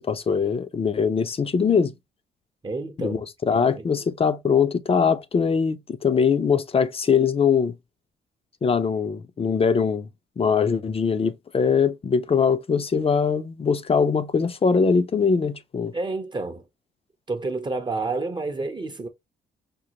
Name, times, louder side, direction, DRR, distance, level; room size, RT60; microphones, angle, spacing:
voice 1, 0.0-1.9 3.0-7.7 8.6-10.1 10.4-15.9, left 6 dB, 30° left, 0.5 m, -22 dB
voice 2, 2.6-3.2 3.5-3.8 15.9-16.6 17.3-19.1, right 3 dB, 20° right, 0.6 m, -29 dB
5.2 x 2.1 x 2.8 m
cardioid pair, 90°, 20 cm